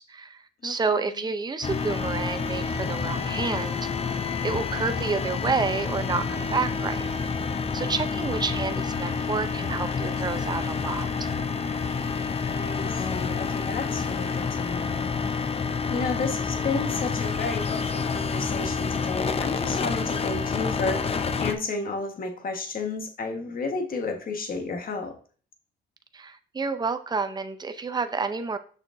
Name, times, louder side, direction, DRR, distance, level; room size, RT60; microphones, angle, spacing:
voice 1, 0.0-4.1 4.4-7.1 7.7-11.3 26.1-28.6, right 4 dB, 20° right, 9 dB, 0.6 m, -29 dB
voice 2, 0.6-1.3 12.4-15.2 15.9-25.1, left 3 dB, 45° left, 4 dB, 1.4 m, -32 dB
sound 1, 1.6-21.5, left 5 dB, 30° left, 0.6 m, -28 dB
6.4 x 6.4 x 2.6 m, 0.41 s
cardioid pair, 90°, 20 cm